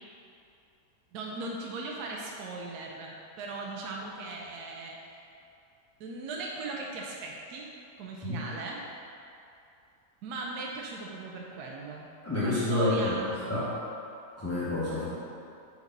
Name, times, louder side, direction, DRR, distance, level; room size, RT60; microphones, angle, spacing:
voice 1, 1.1-5.0 6.0-7.7 8.0-8.8 10.2-12.1 12.4-13.7, right 3 dB, 70° right, -2 dB, 1.1 m, -38 dB
voice 2, 12.2-13.1 13.5-13.7 14.3-15.1, left 2 dB, 15° left, -11 dB, 0.6 m, -28 dB
4.9 x 4.1 x 5.2 m, 2.6 s
omnidirectional pair, 1.8 m